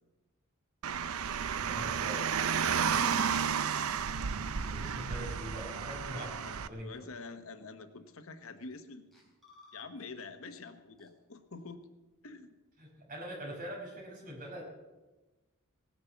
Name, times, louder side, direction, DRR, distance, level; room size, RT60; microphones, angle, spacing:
Car, 0.8-6.7, right 7 dB, 85° right, 0.6 m, -32 dB
voice 1, 1.6-2.3 4.7-6.9 12.8-14.6, equal, 40° right, -2 dB, 5.4 m, -43 dB
sound 1, 3.9-4.2 4.9-5.1 6.8-7.0 7.8-8.1 8.8-8.9 9.1-10.3 10.6-10.7 11.0-11.1, left 2 dB, ahead, 3.5 m, -59 dB
voice 2, 6.1-9.3 9.7-11.9 12.2-12.6, left 3 dB, 70° left, 9 dB, 1.1 m, -47 dB
17.5 x 9.8 x 7.1 m, 1.1 s
head